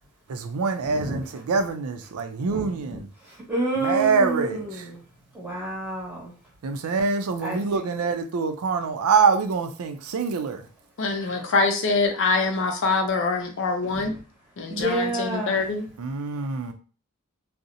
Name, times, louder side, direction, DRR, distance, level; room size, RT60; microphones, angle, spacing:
voice 1, 0.3-3.1 3.8-4.9 6.6-10.6 16.0-16.7, right 5 dB, 90° right, 0.4 m, -25 dB
voice 2, 3.5-5.0 5.3-6.3 7.4-7.9 11.2-11.4 14.0-14.1 14.7-15.6, right 1 dB, 10° right, 1.1 m, -29 dB
voice 3, 11.0-14.2 14.6-15.9, left 3 dB, 60° left, 0.5 m, -24 dB
2.5 x 2.0 x 2.7 m
head